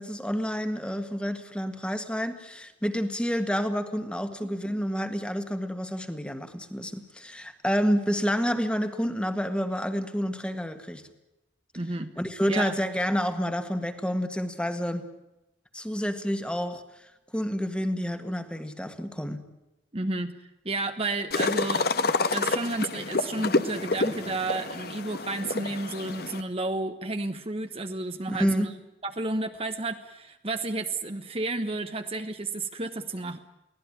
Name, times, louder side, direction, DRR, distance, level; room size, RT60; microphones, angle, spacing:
voice 1, 0.0-11.0 12.2-15.1 15.7-17.1 17.3-19.4 28.3-28.7, equal, 5° left, 8 dB, 1.7 m, -29 dB
voice 2, 4.4-4.8 11.7-12.1 12.5-12.7 19.9-28.7 29.0-33.4, right 2 dB, 30° right, 7 dB, 1.1 m, -32 dB
sound 1, 21.3-26.4, left 3 dB, 60° left, 1.2 m, -28 dB
23.5 x 17.0 x 9.8 m, 0.94 s
head